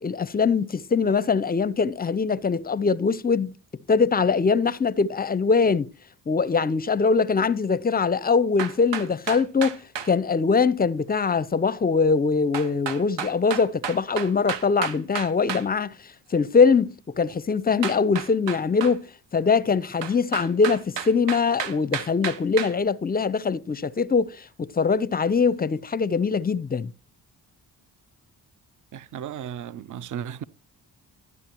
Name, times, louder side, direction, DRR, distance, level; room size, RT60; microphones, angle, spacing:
voice 1, 0.0-3.5 3.9-5.9 6.3-15.9 16.3-26.9, left 5 dB, 20° left, 0.5 m, -22 dB
sound 1, 8.6-10.1 12.5-15.7 17.8-19.0 20.0-22.7, right 8 dB, 75° right, 0.9 m, -31 dB
voice 2, 28.9-30.4, right 9 dB, 45° right, 0.5 m, -35 dB
12.0 x 9.4 x 2.9 m
supercardioid pair, 45°, 43 cm